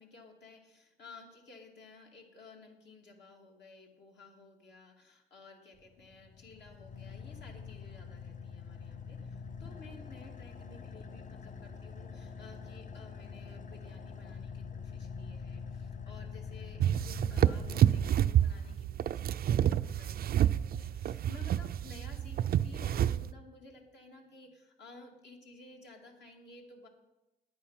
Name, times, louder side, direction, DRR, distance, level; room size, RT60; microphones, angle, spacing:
voice 1, 0.0-26.9, left 3 dB, 60° left, 1 dB, 2.5 m, -55 dB
Car / Idling, 5.8-18.7, left 5 dB, 40° left, 0.8 m, -45 dB
sound 1, 16.8-23.3, right 10 dB, 50° right, 0.4 m, -28 dB
9.5 x 9.1 x 5.7 m, 0.99 s
cardioid pair, 90°, 20 cm